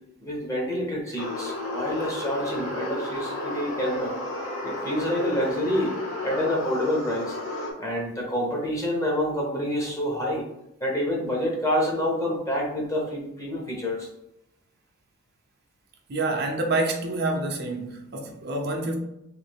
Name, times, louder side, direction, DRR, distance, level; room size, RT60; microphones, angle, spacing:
voice 1, 0.2-4.1 4.6-6.0 6.2-7.4 7.8-10.5 10.8-14.1, equal, 15° left, 0.9 m, -27 dB
sound 1, 1.2-7.7, left 1 dB, 70° left, 0.9 m, -33 dB
voice 2, 16.1-19.0, right 2 dB, 50° right, 0.7 m, -27 dB
3.2 x 3.1 x 3.5 m
head